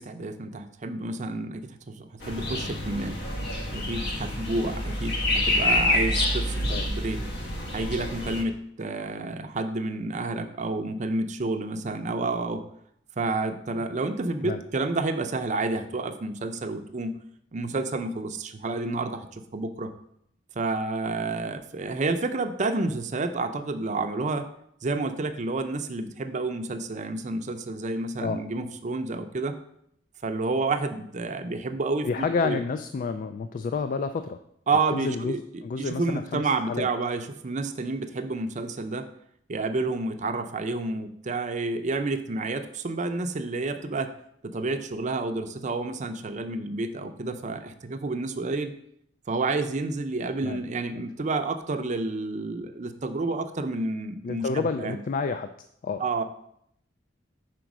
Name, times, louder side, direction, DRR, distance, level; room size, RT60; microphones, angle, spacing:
voice 1, 0.0-3.2 3.7-7.2 7.7-12.6 13.2-17.1 17.5-19.9 20.6-24.5 24.8-29.6 30.2-32.6 34.7-39.1 39.5-44.1 44.4-48.7 49.3-55.0 56.0-56.2, right 3 dB, 40° right, 8 dB, 0.5 m, -30 dB
sound 1, 2.2-8.4, left 1 dB, 65° left, 1.2 m, -27 dB
voice 2, 32.0-34.4 34.9-36.9 50.4-50.6 50.9-51.0 54.2-55.5 55.8-56.1, left 4 dB, 45° left, 9 dB, 0.3 m, -30 dB
5.1 x 4.5 x 6.0 m, 0.73 s
head